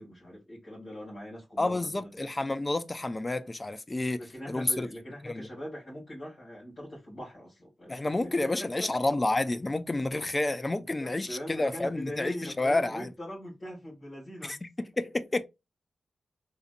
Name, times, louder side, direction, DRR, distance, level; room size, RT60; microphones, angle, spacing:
voice 1, 0.0-2.2 4.1-8.3 8.6-8.9 10.8-14.6, equal, 45° left, 2.3 m, -42 dB
voice 2, 1.6-4.9 5.2-5.5 7.9-13.1 14.4-15.4, left 2 dB, 25° left, 0.4 m, -30 dB
3.9 x 2.6 x 2.5 m
cardioid pair, 65°, 0 cm